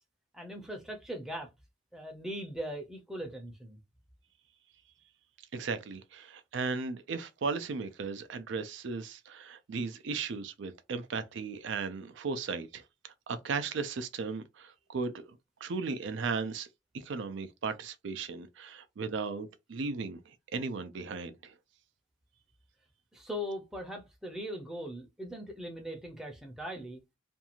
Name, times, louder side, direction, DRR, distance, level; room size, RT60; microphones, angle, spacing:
voice 1, 0.3-1.5 1.9-3.8 23.1-27.0, equal, ahead, 0.6 m, -40 dB
voice 2, 5.5-16.7 16.9-21.5, right 4 dB, 65° right, 0.4 m, -36 dB
2.6 x 2.3 x 2.8 m
head